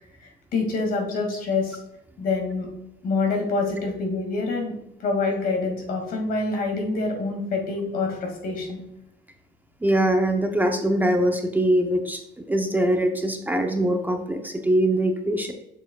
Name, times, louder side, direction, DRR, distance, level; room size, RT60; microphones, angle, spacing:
voice 1, 0.2-1.8 2.2-2.7 3.0-4.7 5.0-8.8, left 3 dB, 60° left, 2 dB, 2.1 m, -26 dB
voice 2, 9.8-15.5, right 1 dB, 10° right, 4 dB, 0.6 m, -22 dB
7.0 x 6.8 x 2.3 m, 0.86 s
cardioid pair, 110°, 17 cm